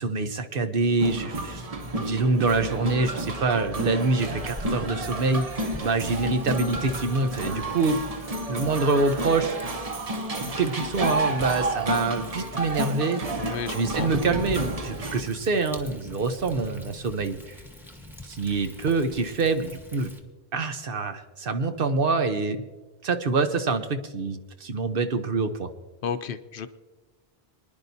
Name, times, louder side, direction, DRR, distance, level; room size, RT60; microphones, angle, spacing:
voice 1, 0.0-1.6 1.9-8.0 8.5-9.6 10.6-13.2 13.7-17.6 18.2-20.1 20.5-22.6 23.0-25.7, right 3 dB, 60° right, 8 dB, 1.0 m, -26 dB
sound 1, 1.0-15.2, right 1 dB, 40° right, 0.9 m, -31 dB
Thunder, 4.3-20.2, left 1 dB, ahead, 1.2 m, -42 dB
voice 2, 13.4-14.1 26.0-26.7, left 7 dB, 65° left, 11 dB, 0.7 m, -32 dB
24.5 x 10.5 x 2.7 m, 1.2 s
omnidirectional pair, 1.0 m